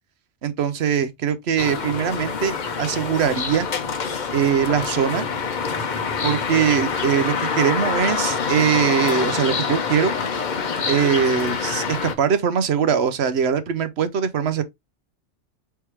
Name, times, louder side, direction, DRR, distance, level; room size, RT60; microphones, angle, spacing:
voice 1, 0.4-3.7 4.3-5.2 6.2-10.1 10.9-14.6, right 8 dB, 65° right, 0.9 m, -21 dB
sound 1, 1.6-12.1, left 5 dB, 45° left, 0.8 m, -26 dB
4.5 x 3.5 x 3.0 m
omnidirectional pair, 1.3 m